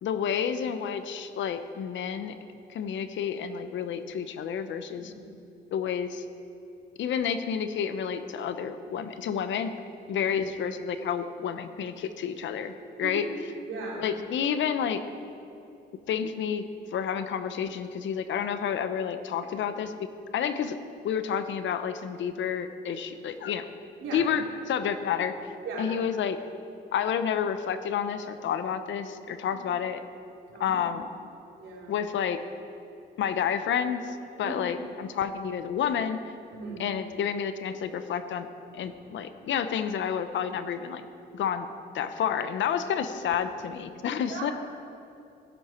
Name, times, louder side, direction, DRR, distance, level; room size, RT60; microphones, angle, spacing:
voice 1, 0.0-2.3 2.7-5.1 5.7-6.2 7.0-9.7 10.1-12.7 13.0-13.3 14.0-15.0 16.1-16.7 16.9-20.1 20.3-20.8 21.0-23.6 24.1-25.3 25.8-26.4 26.9-30.0 30.6-31.1 31.9-32.4 33.2-36.2 36.8-38.5 38.7-41.0 41.3-41.7 41.9-44.5, left 8 dB, 70° left, 10 dB, 0.9 m, -30 dB
voice 2, 13.6-14.0 24.0-24.2 25.6-25.9 29.5-29.6 30.5-30.8 31.6-31.9 34.4-34.6 36.5-36.8 44.2-44.5, right 4 dB, 85° right, -4 dB, 3.6 m, -38 dB
15.5 x 10.5 x 4.4 m, 2.7 s
cardioid pair, 90°, 20 cm